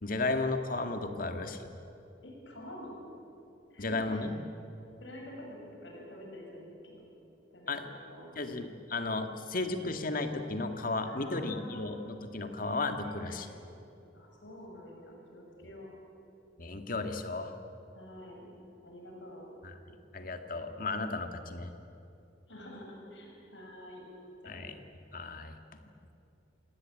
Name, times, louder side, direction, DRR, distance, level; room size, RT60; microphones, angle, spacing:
voice 1, 0.0-1.7 3.8-4.3 7.7-7.8 8.4-13.5 16.6-17.5 19.6-19.7 20.1-21.7 24.5-24.7 25.1-25.5, left 3 dB, 50° left, 6 dB, 1.9 m, -34 dB
voice 2, 2.2-3.0 3.7-4.2 5.0-7.0 7.5-8.3 11.1-11.9 13.0-13.6 14.1-15.9 17.9-19.5 22.5-24.0 24.4-24.6, left 1 dB, 90° left, 0 dB, 6.7 m, -48 dB
27.5 x 18.5 x 8.7 m, 2.8 s
head